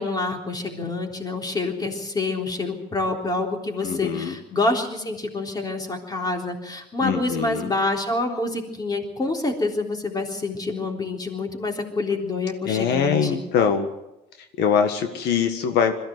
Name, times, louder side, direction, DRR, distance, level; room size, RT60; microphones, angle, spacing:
voice 1, 0.0-13.4, left 2 dB, 25° left, 2 dB, 3.7 m, -27 dB
voice 2, 3.8-4.3 7.0-7.7 12.6-13.9 14.4-15.9, left 7 dB, 80° left, 7 dB, 1.6 m, -23 dB
22.0 x 15.0 x 7.9 m, 0.91 s
cardioid pair, 110°, 17 cm